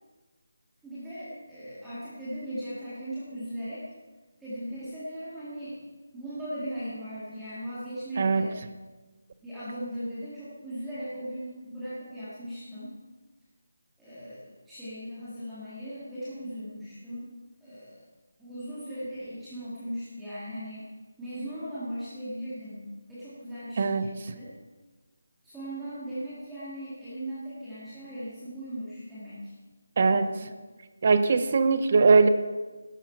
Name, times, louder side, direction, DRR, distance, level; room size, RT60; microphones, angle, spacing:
voice 1, 0.8-3.8 4.4-5.8 6.1-8.6 9.4-12.9 14.0-17.3 17.6-18.0 18.4-20.9 21.2-24.5 25.4-29.5 30.0-30.5, equal, 5° right, -14 dB, 2.0 m, -38 dB
voice 2, 8.2-8.5 23.8-24.1 30.0-30.3 31.0-32.3, right 4 dB, 30° right, 11 dB, 0.7 m, -21 dB
12.0 x 12.0 x 4.5 m, 1.3 s
figure-of-eight pair, 175°, 0 cm